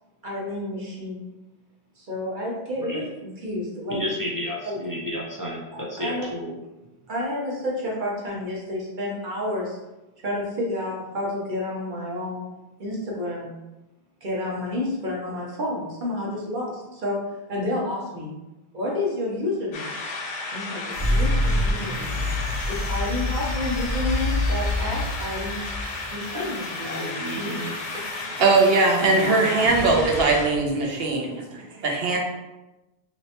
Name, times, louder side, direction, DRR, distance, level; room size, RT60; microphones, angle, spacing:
voice 1, 0.2-1.3 2.0-4.0 4.6-4.8 6.0-6.3 7.1-9.8 10.2-12.4 12.8-13.5 14.2-18.4 18.7-20.0 20.5-22.2 22.7-25.6 26.1-27.6 29.2-29.7, left 1 dB, 50° right, -4 dB, 1.0 m, -30 dB
voice 2, 3.9-6.5 26.3-26.5 26.8-27.7, equal, 30° right, -4 dB, 0.4 m, -31 dB
sound 1, 19.7-30.5, left 3 dB, 80° left, 0.8 m, -34 dB
sound 2, 20.9-30.9, left 1 dB, 15° left, 0.6 m, -28 dB
voice 3, 28.4-32.2, right 3 dB, 70° right, 1 dB, 0.9 m, -20 dB
3.1 x 2.7 x 2.9 m, 1.0 s
omnidirectional pair, 1.1 m